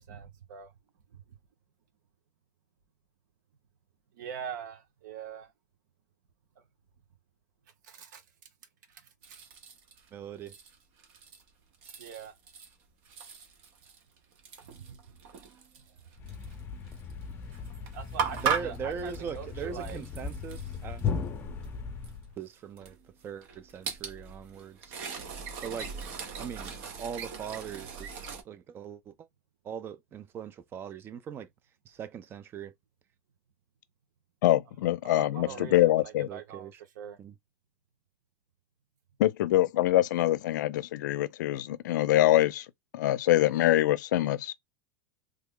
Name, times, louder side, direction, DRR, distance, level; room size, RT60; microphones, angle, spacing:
voice 1, 0.1-0.7 4.1-5.5 7.8-8.2 8.9-9.4 12.0-12.3 14.6-15.0 17.9-20.0 35.0-37.2, right 8 dB, 85° right, 0.9 m, -43 dB
sound 1, 9.2-10.1 10.5-11.5 11.7-12.7 13.1-16.5 16.9-17.1 17.5-21.2 21.6-21.7 22.0-22.1 22.7-28.4, right 6 dB, 55° right, 0.8 m, -38 dB
voice 2, 10.1-10.6 18.4-21.0 22.4-23.0 23.2-25.0 25.6-25.9 26.4-26.7 27.0-29.3 29.6-31.5 31.9-32.7 35.5-35.7 36.3-36.7 37.2-37.3, right 7 dB, 25° right, 0.4 m, -40 dB
Thump thud, 16.2-22.4, left 5 dB, 25° left, 0.7 m, -37 dB
voice 3, 34.4-36.3 39.2-42.7 42.9-44.5, left 14 dB, 85° left, 0.5 m, -24 dB
3.2 x 2.0 x 3.6 m
supercardioid pair, 150°, 10 cm